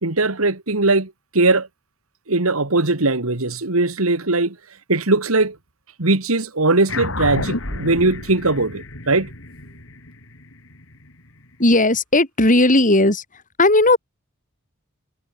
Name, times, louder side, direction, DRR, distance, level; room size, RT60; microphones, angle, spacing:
voice 1, 0.0-1.7 2.3-4.6 4.9-5.6 6.0-9.3, right 2 dB, 75° right, 2.3 m, -20 dB
sound 1, 6.9-11.6, left 2 dB, 65° left, 5.6 m, -31 dB
voice 2, 11.6-13.2 13.6-14.0, left 2 dB, 40° left, 6.6 m, -15 dB
head